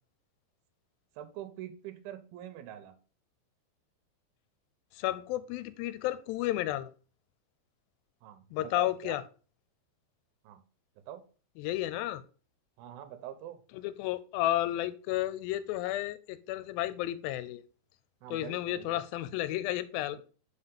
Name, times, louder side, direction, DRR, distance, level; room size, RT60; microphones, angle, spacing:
voice 1, 1.2-2.9 8.2-9.2 10.4-10.6 11.1-11.2 12.8-13.6 18.2-19.0, right 11 dB, 85° right, 10 dB, 2.5 m, -44 dB
voice 2, 5.0-6.9 8.5-9.2 11.6-12.2 13.7-17.6 18.3-20.2, left 15 dB, 85° left, 14 dB, 2.3 m, -32 dB
5.6 x 4.0 x 5.2 m, 0.37 s
omnidirectional pair, 4.2 m